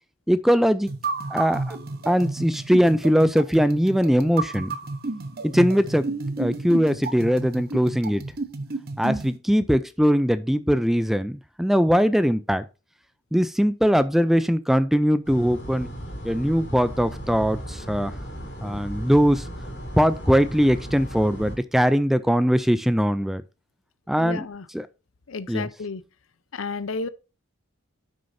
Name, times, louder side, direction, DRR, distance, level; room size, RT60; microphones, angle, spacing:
voice 1, 0.3-0.9 1.3-1.8 2.1-4.8 5.4-6.1 6.4-8.2 9.0-12.6 13.3-15.9 16.2-18.1 18.6-19.4 20.0-23.4 24.1-24.5 24.7-24.9 25.5-25.7, equal, ahead, 0.3 m, -21 dB
sound 1, 0.9-9.4, right 3 dB, 50° right, 0.9 m, -31 dB
sound 2, 15.2-21.6, equal, 55° left, 3.0 m, -36 dB
voice 2, 24.2-24.7 25.3-26.0 26.5-27.1, left 4 dB, 85° left, 0.7 m, -31 dB
11.0 x 6.4 x 2.7 m
head